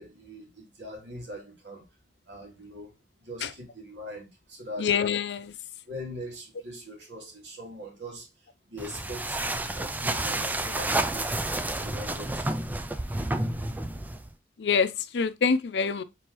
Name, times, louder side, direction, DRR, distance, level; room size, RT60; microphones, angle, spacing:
voice 1, 0.0-1.9 2.3-2.9 3.2-4.9 5.9-8.3 8.7-11.3 11.8-12.6, equal, 90° right, 2.1 m, -41 dB
voice 2, 4.8-5.5 14.6-16.0, left 6 dB, 75° left, 0.5 m, -25 dB
sound 1, 8.8-14.3, right 2 dB, 10° right, 0.4 m, -30 dB
4.6 x 3.4 x 3.0 m
head